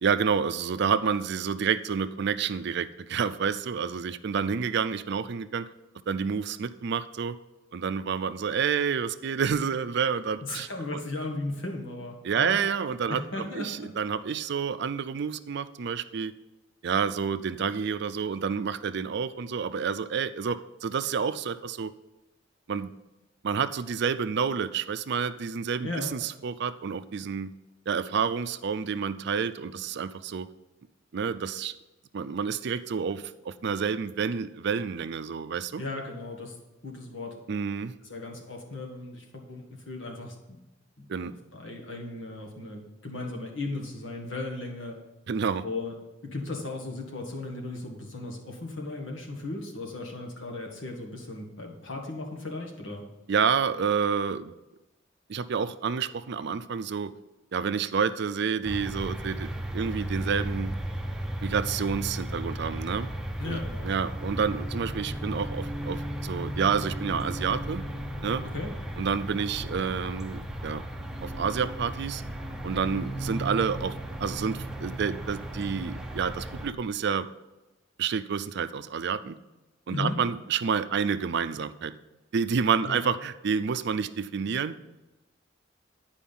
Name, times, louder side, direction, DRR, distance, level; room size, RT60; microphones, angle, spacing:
voice 1, 0.0-5.7 6.1-7.4 7.7-10.7 12.2-16.3 16.8-21.9 22.7-22.9 23.4-27.5 27.9-30.5 31.1-31.7 32.1-35.8 37.5-37.9 41.1-41.3 45.3-45.6 53.3-54.5 55.3-57.1 57.5-60.8 61.4-63.1 63.4-67.9 68.2-68.4 69.0-70.8 71.2-72.2 72.6-77.3 78.0-79.4 79.9-81.9 82.3-85.0, right 6 dB, 60° right, 12 dB, 0.4 m, -29 dB
voice 2, 10.4-12.6 13.1-13.9 25.8-26.1 35.8-36.5 36.8-37.4 38.0-40.6 41.0-45.0 45.6-45.9 46.2-53.0 63.4-63.9 68.5-68.7 79.9-80.2 82.8-83.0, left 2 dB, 75° left, 1 dB, 1.8 m, -36 dB
sound 1, 58.6-76.7, right 1 dB, 5° right, 0.8 m, -35 dB
10.5 x 5.0 x 5.5 m, 1.0 s
head